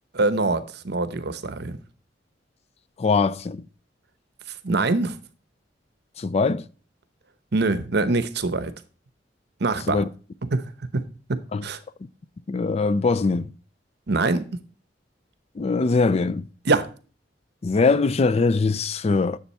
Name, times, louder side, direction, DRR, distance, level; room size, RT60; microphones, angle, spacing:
voice 1, 0.1-1.7 4.6-5.2 7.5-8.7 9.6-10.0 10.5-10.6 10.9-11.0 11.3-11.8 14.1-14.6 16.7-16.9, right 3 dB, 65° right, 0.9 m, -24 dB
voice 2, 3.0-3.6 6.2-6.6 9.9-10.1 11.5-11.6 12.5-13.5 15.6-16.5 17.6-19.4, left 4 dB, 35° left, 0.4 m, -22 dB
10.5 x 7.1 x 4.2 m
head